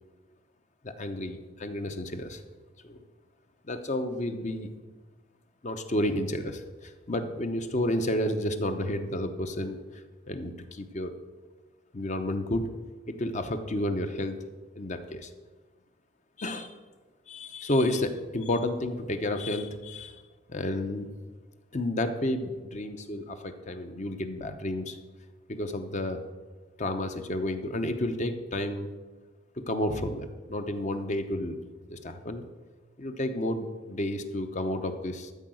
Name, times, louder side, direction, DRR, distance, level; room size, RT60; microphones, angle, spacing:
voice 1, 0.8-2.4 2.8-3.0 3.7-4.7 5.6-9.8 10.3-11.1 11.9-12.7 13.1-14.3 14.7-15.3 16.4-16.7 17.3-20.2 20.5-21.1 21.7-25.0 25.5-26.2 26.8-28.9 29.6-31.6 31.9-32.4 33.0-35.3, left 1 dB, 35° left, 7 dB, 0.9 m, -31 dB
13.0 x 4.7 x 7.8 m, 1.3 s
head